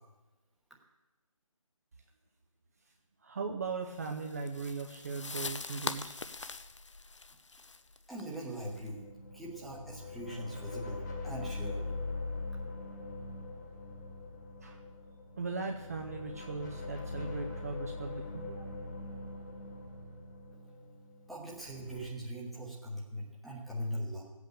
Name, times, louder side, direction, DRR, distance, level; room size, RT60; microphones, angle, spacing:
voice 1, 3.2-6.2 14.6-14.8 15.4-18.8, right 4 dB, 30° right, 2 dB, 0.8 m, -38 dB
sound 1, 4.0-8.9, left 4 dB, 60° left, 0.8 m, -42 dB
voice 2, 8.1-9.0 9.3-11.8 21.3-24.2, equal, ahead, -5 dB, 1.2 m, -41 dB
sound 2, 8.6-22.1, left 3 dB, 35° left, 1.9 m, -42 dB
15.0 x 8.3 x 6.8 m, 1.1 s
figure-of-eight pair, 160°, 17 cm